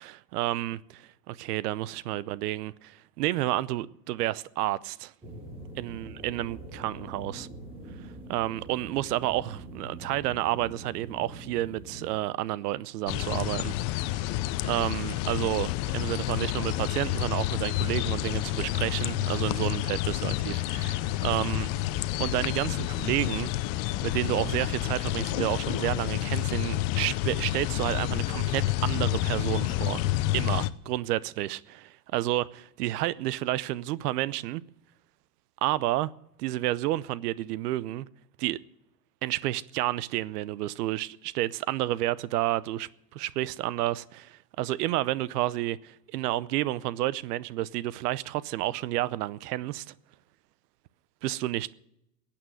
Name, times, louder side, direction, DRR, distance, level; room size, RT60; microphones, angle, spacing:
voice 1, 0.0-5.1 5.8-7.5 8.3-14.2 14.6-21.7 22.2-23.5 24.0-30.0 30.3-32.5 32.8-34.6 35.6-36.1 36.4-38.1 38.4-38.6 39.2-49.9 51.2-51.7, right 15 dB, 70° right, 0.8 m, -30 dB
sound 1, 5.2-12.1, right 1 dB, 10° right, 4.7 m, -44 dB
sound 2, 13.1-30.7, left 15 dB, 45° left, 0.7 m, -29 dB
15.5 x 8.9 x 9.3 m
hypercardioid pair, 110°, 49 cm